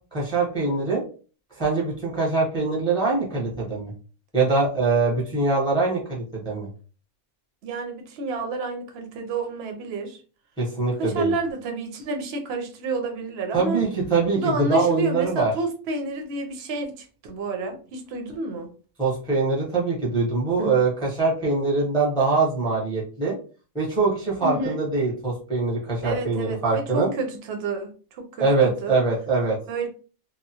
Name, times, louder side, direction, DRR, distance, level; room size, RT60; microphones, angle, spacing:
voice 1, 0.1-1.0 1.5-3.9 4.3-6.7 10.6-11.3 13.5-15.5 19.0-23.4 23.7-27.1 28.4-29.6, right 3 dB, 5° left, -4 dB, 0.7 m, -23 dB
voice 2, 7.6-10.2 11.0-13.8 14.3-18.7 20.6-20.8 24.4-24.8 26.0-28.5 28.8-29.0 29.7-29.9, right 3 dB, 55° right, 4 dB, 0.8 m, -30 dB
2.9 x 2.0 x 2.7 m, 0.37 s
omnidirectional pair, 1.5 m